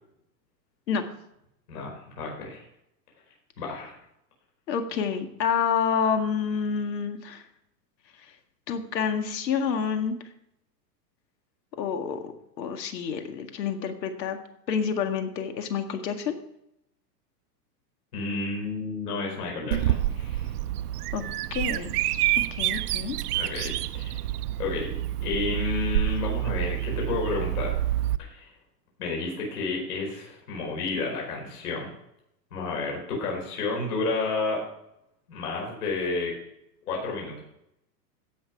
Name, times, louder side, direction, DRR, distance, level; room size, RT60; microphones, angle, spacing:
voice 1, 1.7-2.6 3.6-3.9 18.1-20.5 23.3-24.2 24.6-24.9 25.2-27.8 28.3-28.5 29.0-31.9 32.5-34.6 35.3-36.3 36.9-37.4, left 3 dB, 65° left, -1 dB, 4.9 m, -31 dB
voice 2, 4.7-7.4 8.7-10.2 11.8-14.4 14.7-16.4 21.1-21.2 21.5-22.2 22.5-23.2, left 6 dB, 85° left, 6 dB, 2.0 m, -28 dB
Bird vocalization bird call bird song, 19.7-28.2, right 14 dB, 70° right, 0.6 m, -28 dB
16.5 x 6.1 x 4.6 m, 0.79 s
supercardioid pair, 170°, 49 cm